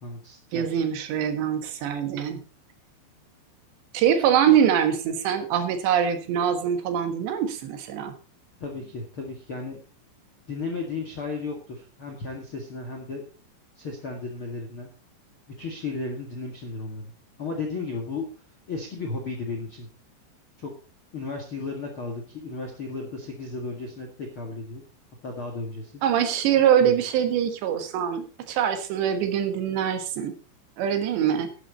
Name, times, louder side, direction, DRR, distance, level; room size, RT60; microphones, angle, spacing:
voice 1, 0.0-0.8 8.6-9.8 10.5-13.2 13.7-14.9 15.6-17.1 17.4-18.3 18.7-19.9 20.6-20.7 21.1-24.8 25.2-26.0 26.8-26.9, left 3 dB, 50° left, 2 dB, 1.7 m, -34 dB
voice 2, 0.5-2.4 3.9-8.1 26.0-30.4 30.8-31.5, right 9 dB, 70° right, 7 dB, 3.5 m, -23 dB
12.0 x 11.5 x 4.3 m, 0.35 s
omnidirectional pair, 5.5 m